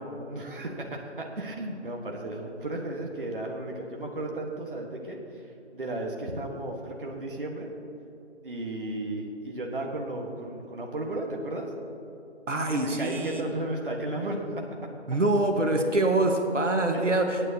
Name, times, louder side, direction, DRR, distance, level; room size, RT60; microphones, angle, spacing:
voice 1, 0.3-7.7 8.4-11.7 13.0-14.6 16.9-17.0, right 1 dB, 45° right, 0 dB, 1.4 m, -34 dB
voice 2, 12.5-13.5 15.1-17.4, right 2 dB, 90° right, 4 dB, 1.5 m, -25 dB
21.5 x 9.3 x 2.8 m, 2.8 s
figure-of-eight pair, 165°, 36 cm